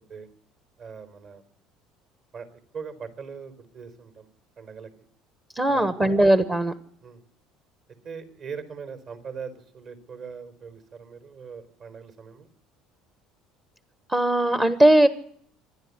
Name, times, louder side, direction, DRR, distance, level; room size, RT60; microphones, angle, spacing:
voice 1, 0.8-1.4 2.3-4.3 4.6-4.9 5.7-5.9 7.0-7.2 8.0-12.5, right 6 dB, 45° right, 11 dB, 4.3 m, -40 dB
voice 2, 5.5-6.7 14.1-15.1, right 1 dB, 15° right, 12 dB, 1.4 m, -19 dB
26.0 x 11.5 x 9.7 m, 0.62 s
cardioid pair, 130°, 0 cm